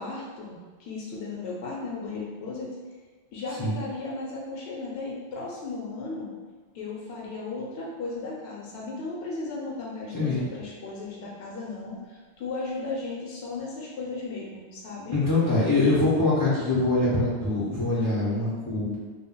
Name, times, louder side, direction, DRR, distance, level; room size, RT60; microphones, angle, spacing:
voice 1, 0.0-2.8 3.3-6.3 6.7-15.2, left 3 dB, 70° left, -3 dB, 0.8 m, -35 dB
voice 2, 10.1-10.4 15.1-18.9, left 2 dB, 30° left, -10 dB, 0.3 m, -24 dB
2.2 x 2.0 x 3.6 m, 1.4 s
omnidirectional pair, 1.1 m